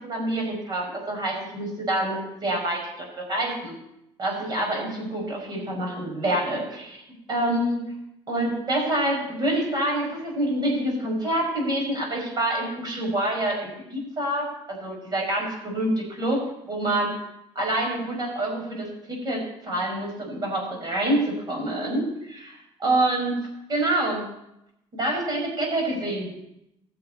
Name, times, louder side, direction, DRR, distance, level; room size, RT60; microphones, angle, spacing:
voice 1, 0.0-3.8 4.2-7.0 7.3-7.8 8.3-17.1 17.6-23.4 23.7-24.3 24.9-26.3, right 1 dB, 35° right, 0 dB, 5.1 m, -27 dB
18.5 x 6.8 x 4.2 m, 0.83 s
cardioid pair, 120°, 12 cm